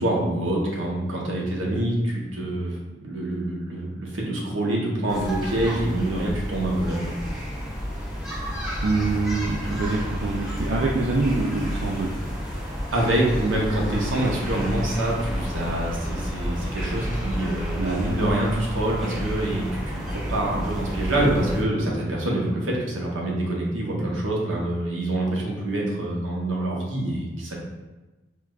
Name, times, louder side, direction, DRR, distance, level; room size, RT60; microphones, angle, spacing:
voice 1, 0.0-7.1 12.9-27.6, right 1 dB, 85° right, -3 dB, 0.8 m, -26 dB
sound 1, 5.1-21.6, equal, 5° right, 0.6 m, -30 dB
voice 2, 8.8-12.1 17.7-18.2, right 3 dB, 70° right, -3 dB, 0.4 m, -25 dB
4.5 x 2.2 x 2.3 m, 1.1 s
head